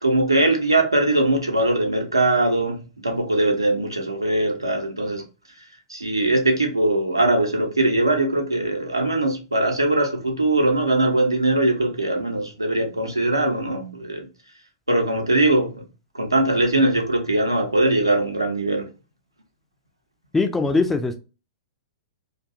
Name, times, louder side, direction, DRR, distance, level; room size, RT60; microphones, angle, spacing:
voice 1, 0.0-5.2 5.6-5.7 5.9-14.3 14.9-15.8 16.1-18.9, right 2 dB, 85° right, 0.6 m, -21 dB
voice 2, 20.3-21.2, left 3 dB, 10° left, 0.3 m, -21 dB
2.5 x 2.3 x 2.4 m
figure-of-eight pair, 105°, 2 cm